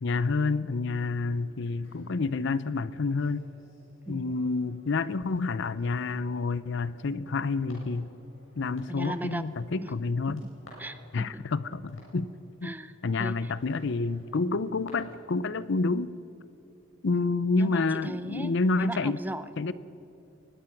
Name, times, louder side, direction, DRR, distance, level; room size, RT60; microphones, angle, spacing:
voice 1, 0.0-3.4 4.1-8.1 8.6-10.4 11.1-12.3 12.6-12.7 13.0-16.1 17.0-19.2 19.6-19.7, left 3 dB, 60° left, 16 dB, 0.6 m, -28 dB
sound 1, 1.3-14.9, left 1 dB, 75° left, 6.8 m, -57 dB
voice 2, 4.1-4.4 8.9-9.4 9.8-9.9 10.3-10.5 10.8-11.5 12.6-13.5 17.1-19.7, right 1 dB, 10° right, 12 dB, 0.6 m, -38 dB
22.5 x 20.0 x 5.9 m, 2.8 s
head